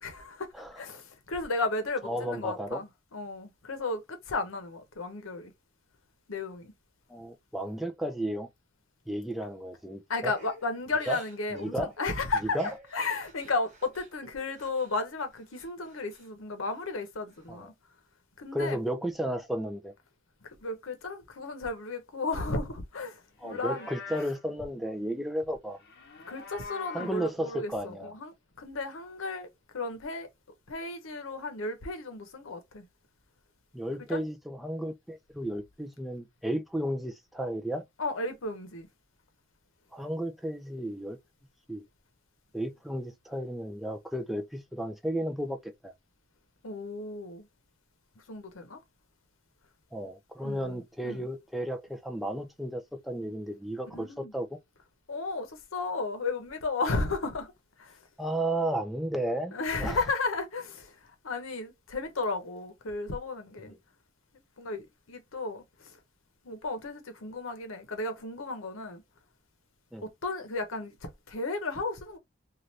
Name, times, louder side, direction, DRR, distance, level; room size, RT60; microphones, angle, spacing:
voice 1, 0.0-5.5 6.3-6.7 10.1-17.7 18.4-18.8 20.4-23.9 26.3-30.3 30.7-32.9 34.1-34.2 38.0-38.9 46.6-47.5 48.2-48.8 50.4-51.3 53.9-54.3 55.1-57.5 57.8-58.0 59.5-63.7 64.6-66.0 66.4-69.0 70.0-72.2, left 3 dB, 85° left, 0.8 m, -34 dB
voice 2, 2.0-2.8 7.1-8.5 9.1-10.3 11.1-11.2 11.5-11.9 12.5-12.7 17.5-17.7 18.5-19.9 23.4-25.8 26.9-28.1 33.7-37.8 39.9-41.2 41.7-41.8 42.5-45.9 49.9-54.6 58.2-60.0 69.9-70.1, right 1 dB, ahead, 0.4 m, -33 dB
Crying sobbing / Breathing, 10.3-14.9 15.3-16.3 16.7-17.4, equal, 35° right, 0.9 m, -51 dB
Livestock farm animals working animals, 23.3-24.4 25.7-27.3, left 5 dB, 50° left, 0.8 m, -44 dB
2.7 x 2.4 x 3.2 m
head